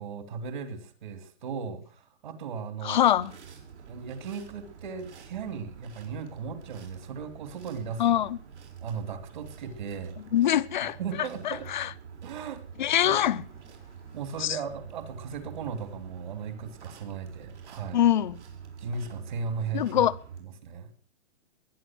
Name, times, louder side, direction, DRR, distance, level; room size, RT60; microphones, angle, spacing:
voice 1, 0.0-3.0 3.9-8.2 8.8-10.2 10.8-11.7 12.2-12.6 13.0-13.2 14.1-18.0 18.8-20.1 20.4-20.9, right 6 dB, 45° right, 2.7 m, -37 dB
voice 2, 2.8-3.3 8.0-8.4 10.3-11.9 12.8-13.4 14.4-14.6 17.9-18.4 19.7-20.2, left 11 dB, 40° left, 0.7 m, -24 dB
sound 1, 3.1-20.4, right 7 dB, 75° right, 6.2 m, -47 dB
21.0 x 10.0 x 6.1 m
hypercardioid pair, 175°, 35 cm